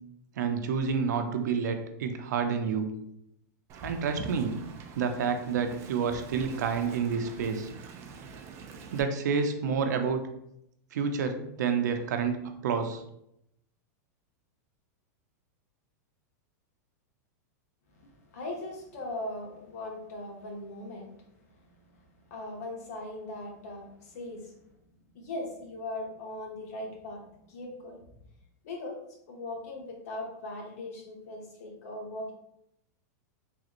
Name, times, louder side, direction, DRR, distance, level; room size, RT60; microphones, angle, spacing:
voice 1, 0.4-3.0 3.8-4.6 5.0-7.7 8.9-10.2 10.9-13.0, right 6 dB, 85° right, 7 dB, 0.5 m, -29 dB
Wind, 3.7-9.0, right 5 dB, 30° right, 0.4 m, -45 dB
voice 2, 17.9-21.1 21.5-22.0 22.3-24.6 25.1-28.0 28.6-29.0 29.3-32.3, left 2 dB, 65° left, 0 dB, 1.0 m, -39 dB
3.4 x 2.4 x 2.9 m, 0.78 s
supercardioid pair, 155°, 9 cm